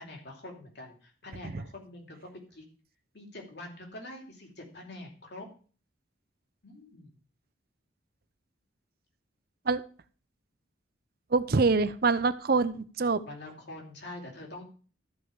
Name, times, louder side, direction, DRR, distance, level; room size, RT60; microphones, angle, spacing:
voice 1, 0.0-2.6 3.1-5.5 6.6-7.1 13.2-14.6, left 2 dB, 55° left, 1 dB, 2.9 m, -45 dB
voice 2, 11.3-13.2, right 4 dB, 50° right, 14 dB, 0.6 m, -25 dB
13.5 x 5.5 x 4.8 m, 0.40 s
head